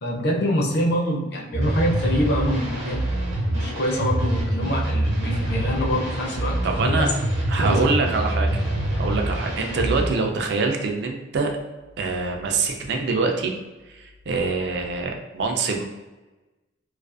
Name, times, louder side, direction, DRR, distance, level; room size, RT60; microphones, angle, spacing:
voice 1, 0.0-3.0 3.5-7.1 7.6-7.9, equal, 60° left, -1 dB, 0.5 m, -25 dB
sound 1, 1.5-10.1, right 1 dB, 80° right, 0.8 m, -25 dB
voice 2, 6.6-7.1 7.5-11.6 12.0-13.5 13.9-15.8, right 4 dB, 60° right, 2 dB, 0.4 m, -25 dB
2.4 x 2.3 x 2.4 m, 1.1 s
head